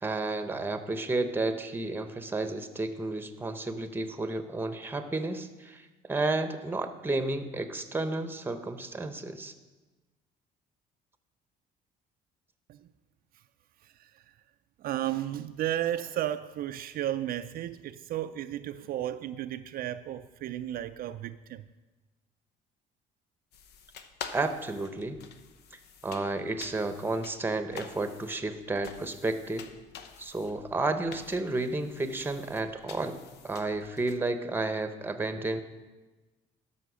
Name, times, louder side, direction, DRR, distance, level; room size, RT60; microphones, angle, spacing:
voice 1, 0.0-9.5 24.3-25.2 26.0-29.7 30.2-35.6, right 2 dB, 10° right, 0.8 m, -32 dB
voice 2, 13.8-14.2 14.8-21.6, right 12 dB, 60° right, 0.4 m, -34 dB
sound 1, 23.5-34.2, left 6 dB, 75° left, 0.8 m, -48 dB
12.5 x 5.7 x 6.2 m
cardioid pair, 110°, 17 cm